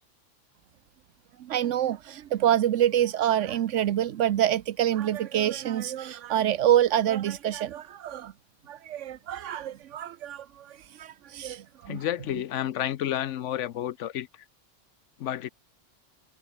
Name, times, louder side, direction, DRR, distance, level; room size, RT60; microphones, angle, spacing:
voice 1, 1.4-8.3 8.7-12.1, right 11 dB, 85° right, 1.1 m, -26 dB
voice 2, 11.9-14.3 15.2-15.5, left 11 dB, 80° left, 1.0 m, -30 dB
omnidirectional pair, 1.2 m